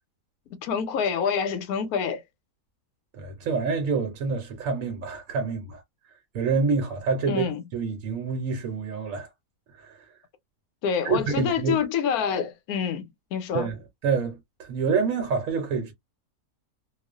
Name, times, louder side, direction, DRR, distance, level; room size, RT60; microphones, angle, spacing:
voice 1, 0.5-2.2 7.3-7.6 10.8-13.7, left 7 dB, 90° left, 1.1 m, -27 dB
voice 2, 3.2-5.8 6.3-9.3 9.7-10.0 11.0-11.8 13.5-15.9, right 5 dB, 70° right, 1.0 m, -27 dB
2.4 x 2.3 x 2.3 m
omnidirectional pair, 1.6 m